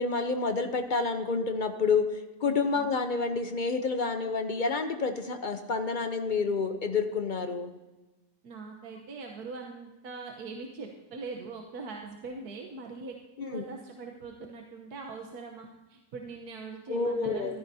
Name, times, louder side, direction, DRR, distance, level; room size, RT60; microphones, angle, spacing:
voice 1, 0.0-7.7 13.5-13.6 16.9-17.6, left 4 dB, 50° left, 7 dB, 0.5 m, -29 dB
voice 2, 2.4-2.9 8.4-13.1 13.4-17.6, right 4 dB, 65° right, 2 dB, 1.5 m, -42 dB
14.0 x 14.0 x 2.8 m, 1.1 s
omnidirectional pair, 1.8 m